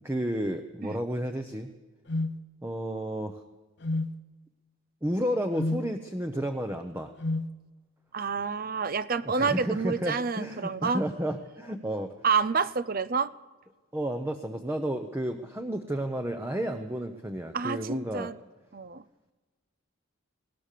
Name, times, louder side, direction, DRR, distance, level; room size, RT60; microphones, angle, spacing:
voice 1, 0.0-1.7 2.6-3.4 5.0-7.1 9.2-12.1 13.9-18.3, equal, 10° right, 5 dB, 0.8 m, -32 dB
sound 1, 2.1-2.4 3.8-4.1 5.6-5.9 7.2-7.5, left 2 dB, 50° left, 0.8 m, -29 dB
voice 2, 8.1-11.0 12.2-13.3 17.5-18.4 18.7-19.0, right 5 dB, 40° right, 16 dB, 0.6 m, -28 dB
21.0 x 18.5 x 6.8 m, 1.2 s
head